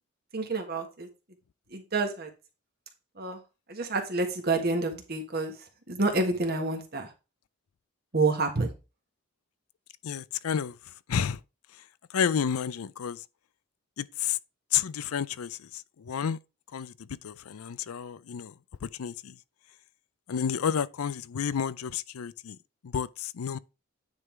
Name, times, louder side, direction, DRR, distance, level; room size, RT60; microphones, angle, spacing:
voice 1, 0.3-1.1 1.7-2.3 3.2-3.4 3.7-7.1 8.1-8.7, right 3 dB, 45° right, 1.6 m, -28 dB
voice 2, 10.0-10.7 11.1-11.4 12.1-13.2 14.0-14.4 14.7-16.4 16.7-18.5 18.8-19.3 20.3-22.6 22.8-23.6, left 7 dB, 80° left, 0.4 m, -31 dB
9.6 x 3.9 x 4.5 m
head